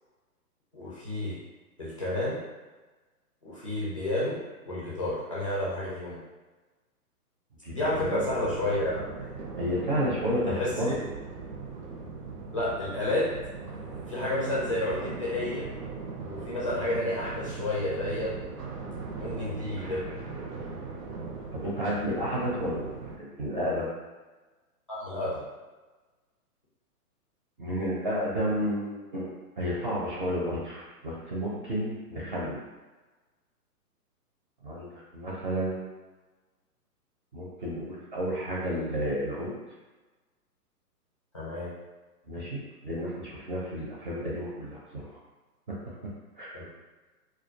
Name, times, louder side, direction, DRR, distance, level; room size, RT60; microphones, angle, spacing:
voice 1, 0.7-1.4 1.8-2.4 3.4-4.4 4.7-6.2 7.7-9.3 10.5-11.0 12.5-13.3 13.9-15.7 16.2-18.4 19.2-20.0 24.9-25.4 41.3-41.7 46.5-46.6, left 1 dB, 25° left, -9 dB, 0.3 m, -30 dB
voice 2, 7.6-8.2 9.6-10.9 21.5-23.9 27.6-29.3 29.6-32.6 34.6-35.9 37.3-39.5 42.3-45.1 46.4-46.5, equal, 35° right, -6 dB, 0.5 m, -31 dB
sound 1, 7.8-23.2, right 4 dB, 90° right, 0.6 m, -39 dB
2.3 x 2.2 x 2.7 m, 1.2 s
hypercardioid pair, 135°, 46 cm